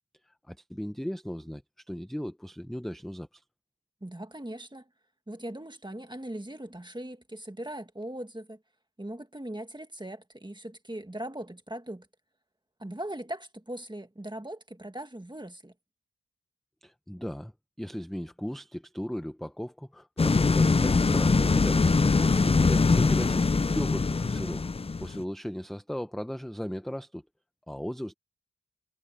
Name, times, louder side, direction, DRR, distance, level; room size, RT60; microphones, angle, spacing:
voice 1, 0.3-1.6 1.9-3.4 16.8-17.5 17.8-21.9 22.5-24.7 25.0-27.2 27.7-28.1, equal, ahead, 0.8 m, -36 dB
voice 2, 4.0-4.9 5.3-8.6 9.0-12.1 12.8-15.7 22.1-22.6, right 1 dB, 15° right, 1.8 m, -40 dB
sound 1, 20.2-25.2, left 4 dB, 20° left, 0.3 m, -23 dB
wide cardioid pair, 75°, 30 cm